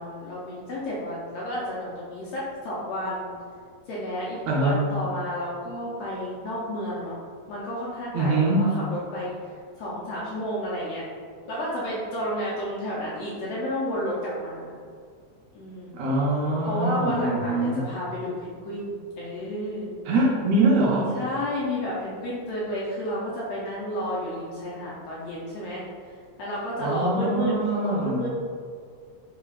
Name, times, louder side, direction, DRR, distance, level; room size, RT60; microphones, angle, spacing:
voice 1, 0.0-3.3 3.9-7.2 7.5-9.4 9.8-11.0 11.5-14.8 15.5-16.0 16.6-20.0 21.1-28.3, equal, 80° left, -6 dB, 1.5 m, -31 dB
voice 2, 4.5-4.9 8.1-8.7 15.9-17.8 20.1-21.1 26.8-28.3, right 2 dB, 75° right, -4 dB, 1.8 m, -23 dB
4.8 x 3.2 x 2.3 m, 2.1 s
omnidirectional pair, 3.3 m